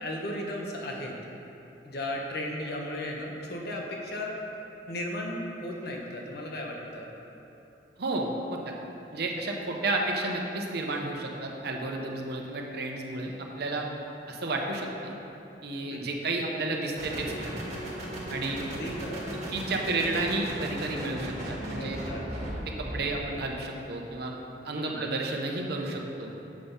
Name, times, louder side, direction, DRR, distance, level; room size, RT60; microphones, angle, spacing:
voice 1, 0.0-1.1 1.8-4.3 4.9-7.1 15.9-16.1 18.6-19.3 21.8-22.2 24.8-25.0, left 1 dB, 60° left, 0 dB, 1.1 m, -35 dB
voice 2, 8.0-8.7 9.1-13.9 14.3-15.1 15.6-17.6 18.3-18.6 19.5-22.0 22.7-24.3 24.6-26.3, right 2 dB, 60° right, 1 dB, 0.9 m, -32 dB
sound 1, 17.0-23.3, right 1 dB, 40° right, 1.7 m, -36 dB
7.6 x 5.4 x 5.6 m, 2.9 s
head